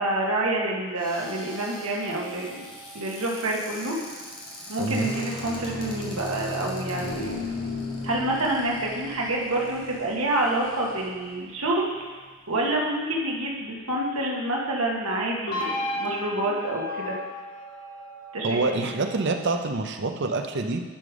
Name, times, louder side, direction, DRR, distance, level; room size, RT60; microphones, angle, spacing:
voice 1, 0.0-2.7 2.9-3.9 4.7-7.4 8.0-12.1 12.5-17.1 18.3-18.9, right 1 dB, 90° right, -2 dB, 1.6 m, -27 dB
Cupboard open or close, 0.9-11.3 12.0-12.1 12.3-12.7, left 1 dB, 25° left, 2.1 m, -45 dB
sound 1, 1.1-3.7 4.8-11.6 15.5-19.7, left 1 dB, 85° left, 1.9 m, -36 dB
voice 2, 18.4-20.8, right 3 dB, 55° right, 5 dB, 0.7 m, -26 dB
10.5 x 5.2 x 5.1 m, 1.4 s
head